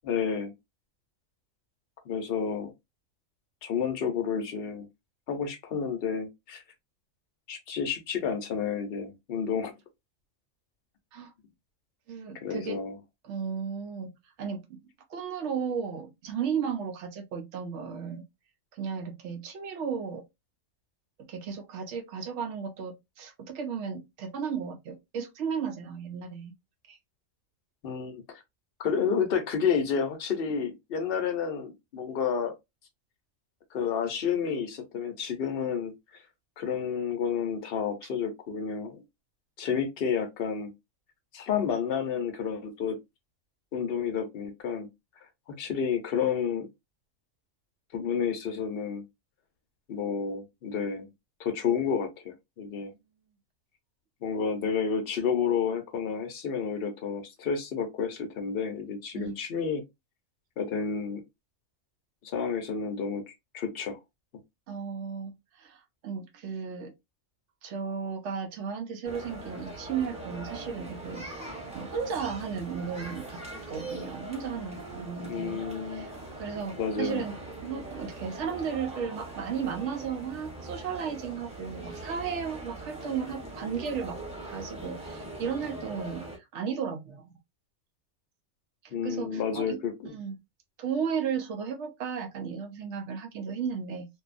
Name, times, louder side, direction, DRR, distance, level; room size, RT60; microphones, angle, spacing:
voice 1, 0.0-0.5 2.1-2.7 3.6-4.9 5.3-6.6 7.5-9.7 12.4-13.0 27.8-28.2 28.8-32.5 33.7-35.9 36.6-39.0 39.6-40.7 41.3-43.0 43.7-44.9 45.5-46.7 47.9-49.0 49.9-51.1 51.4-52.9 54.2-59.8 60.6-61.2 62.2-64.0 75.2-76.1 76.8-77.2 88.9-90.2, left 6 dB, 55° left, 0.8 m, -30 dB
voice 2, 12.1-12.8 13.2-14.1 14.4-14.8 15.1-18.2 18.7-20.2 21.3-26.5 26.9-27.0 59.1-59.4 64.7-65.3 65.6-66.9 67.6-71.2 71.7-75.6 75.9-76.1 76.4-77.4 77.6-84.2 84.4-87.4 88.8-89.8 90.1-90.3 90.8-94.1, right 6 dB, 65° right, 0.8 m, -34 dB
sound 1, 69.0-86.4, right 2 dB, 5° right, 0.8 m, -41 dB
2.6 x 2.3 x 2.4 m
omnidirectional pair, 1.4 m